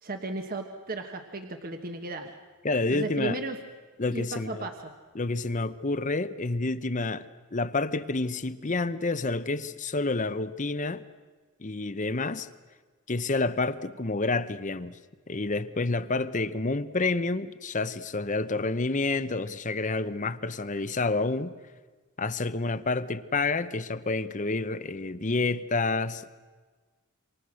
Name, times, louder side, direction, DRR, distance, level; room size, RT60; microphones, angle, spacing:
voice 1, 0.0-2.4 2.9-3.6 4.1-4.9, right 2 dB, 40° right, 1.3 m, -35 dB
voice 2, 2.6-3.4 4.0-4.7 5.1-11.0 11.6-12.5 13.1-15.0 15.3-21.5 22.2-26.3, left 3 dB, 35° left, 0.8 m, -29 dB
28.0 x 25.5 x 6.4 m
head